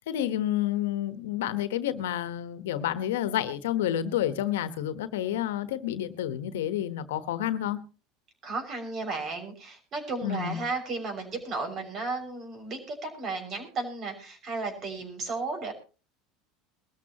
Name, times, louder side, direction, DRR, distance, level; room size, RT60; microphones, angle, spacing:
voice 1, 0.1-7.8 10.2-10.6, left 11 dB, 80° left, 12 dB, 1.2 m, -29 dB
voice 2, 8.4-15.7, right 3 dB, 45° right, 6 dB, 6.1 m, -34 dB
22.5 x 13.5 x 3.0 m, 0.34 s
hypercardioid pair, 85°, 0 cm